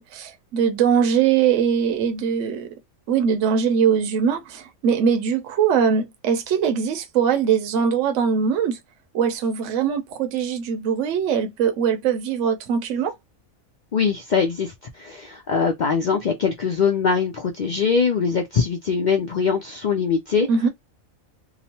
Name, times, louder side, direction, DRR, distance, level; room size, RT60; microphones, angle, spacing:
voice 1, 0.0-2.7 3.1-8.8 9.1-13.1 20.5-20.7, right 7 dB, 70° right, 0.9 m, -21 dB
voice 2, 13.9-20.5, left 5 dB, 70° left, 0.4 m, -22 dB
2.9 x 2.1 x 2.8 m
omnidirectional pair, 1.4 m